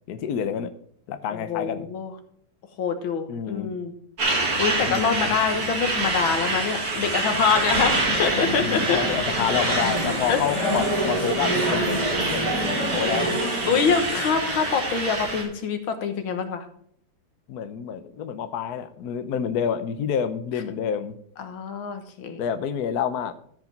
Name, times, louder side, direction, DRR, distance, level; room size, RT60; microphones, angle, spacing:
voice 1, 0.1-0.7 1.1-1.9 3.3-3.7 4.9-5.3 8.6-12.6 12.9-13.4 13.6-14.0 17.5-21.2 22.4-23.3, left 8 dB, 65° left, 11 dB, 1.1 m, -28 dB
voice 2, 1.3-2.1 2.8-3.9 4.3-9.0 10.3-10.4 12.4-13.1 13.7-16.7 21.4-22.4, left 6 dB, 80° left, 7 dB, 2.1 m, -25 dB
Truck, 4.2-15.4, right 2 dB, 50° right, 2.5 m, -27 dB
sound 1, 7.7-14.1, right 1 dB, 15° right, 3.3 m, -28 dB
13.5 x 5.2 x 5.2 m, 0.64 s
omnidirectional pair, 2.2 m